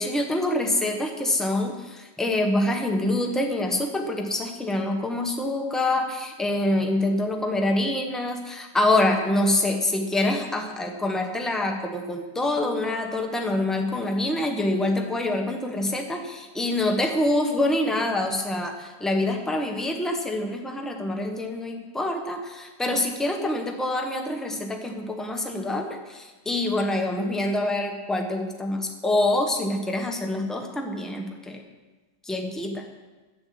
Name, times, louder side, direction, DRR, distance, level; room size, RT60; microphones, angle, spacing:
voice 1, 0.0-31.6 32.3-32.8, left 1 dB, ahead, 3 dB, 0.9 m, -26 dB
9.8 x 8.7 x 7.7 m, 1.2 s
omnidirectional pair, 1.9 m